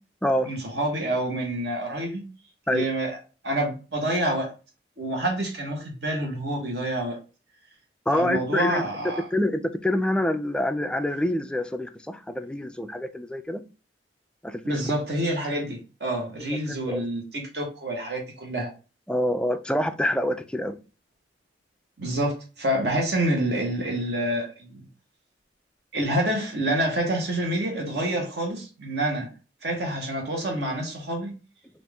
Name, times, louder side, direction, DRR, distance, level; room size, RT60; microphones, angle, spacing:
voice 1, 0.5-2.2 2.7-3.2 3.4-4.5 5.0-7.2 8.1-9.2 14.6-18.7 22.0-24.8 25.9-29.3 29.6-31.3, right 1 dB, 65° right, 1.3 m, -27 dB
voice 2, 8.1-8.8 9.3-13.6 14.4-14.9 16.4-16.5 16.9-17.0 19.1-20.8, left 1 dB, 5° left, 0.3 m, -26 dB
4.2 x 2.6 x 3.4 m
head